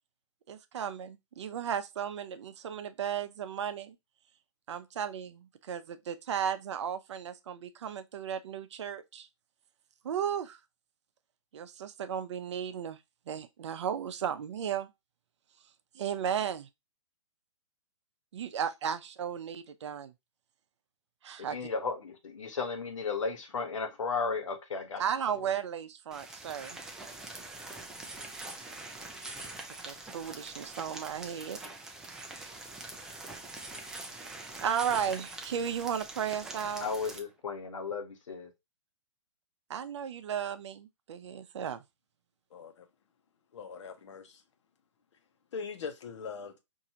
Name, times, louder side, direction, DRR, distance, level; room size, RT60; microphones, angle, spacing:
voice 1, 0.5-4.0 4.7-9.3 10.0-10.6 11.5-13.0 13.3-14.9 15.9-16.6 18.3-20.1 21.2-21.7 25.0-26.8 29.8-31.6 34.6-36.9 39.7-41.8, right 8 dB, 65° right, 0.6 m, -35 dB
voice 2, 21.4-25.0 36.8-38.5, left 4 dB, 80° left, 1.2 m, -34 dB
sound 1, 26.1-37.2, right 2 dB, 5° right, 0.4 m, -44 dB
voice 3, 42.5-42.9 43.5-44.4 45.5-46.6, left 5 dB, 65° left, 0.9 m, -41 dB
4.7 x 2.6 x 2.8 m
hypercardioid pair, 145°, 16 cm